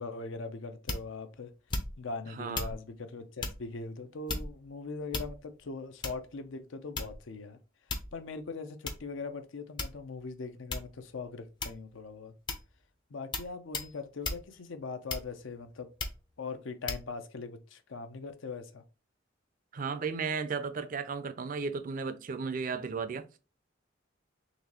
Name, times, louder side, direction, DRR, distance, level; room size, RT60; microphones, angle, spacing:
voice 1, 0.0-1.5 2.0-7.6 8.1-12.3 13.1-15.9 16.4-18.8, left 4 dB, 75° left, 0.6 m, -41 dB
sound 1, 0.9-1.2 1.7-2.1 2.5-2.8 3.4-3.6 4.3-4.7 5.1-5.6 6.0-6.3 7.0-7.3 7.9-8.2 8.9-9.0 9.8-10.2 10.7-11.0 11.6-11.9 12.5-12.7 13.3-13.5 13.7-13.9 14.2-14.4 15.1-15.5 16.0-16.2 16.9-17.0, left 3 dB, 25° left, 0.5 m, -35 dB
voice 2, 2.3-2.8 19.7-23.2, right 5 dB, 45° right, 0.4 m, -34 dB
4.0 x 3.0 x 2.9 m
head